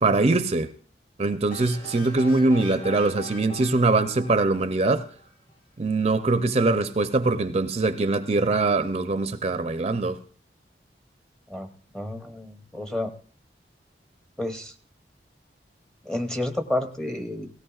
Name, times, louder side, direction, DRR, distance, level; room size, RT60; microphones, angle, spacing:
voice 1, 0.0-0.7 1.2-5.0 5.8-10.2, right 3 dB, 35° right, 0.5 m, -22 dB
sound 1, 1.5-5.3, left 1 dB, 55° left, 7.7 m, -42 dB
voice 2, 11.9-13.1 14.4-14.7 16.0-17.5, left 1 dB, 5° left, 0.8 m, -30 dB
17.5 x 17.0 x 2.4 m
head